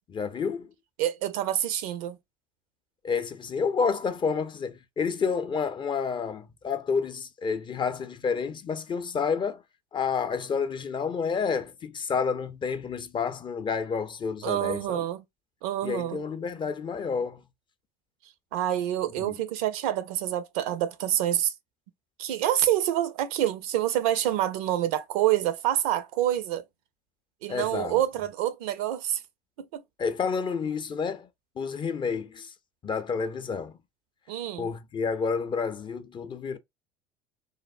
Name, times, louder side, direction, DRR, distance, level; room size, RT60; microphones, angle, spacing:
voice 1, 0.1-0.7 3.0-9.6 9.9-15.0 15.8-17.4 19.2-19.3 27.5-28.0 30.0-31.3 31.6-32.5 32.8-33.7 34.6-36.6, left 5 dB, 25° left, 0.4 m, -29 dB
voice 2, 1.0-2.2 14.4-15.2 15.6-16.2 18.5-21.5 22.2-26.6 27.4-29.2 29.7-29.8 34.3-34.7, right 12 dB, 65° right, 0.5 m, -27 dB
3.3 x 2.0 x 2.4 m
figure-of-eight pair, 65°, 20 cm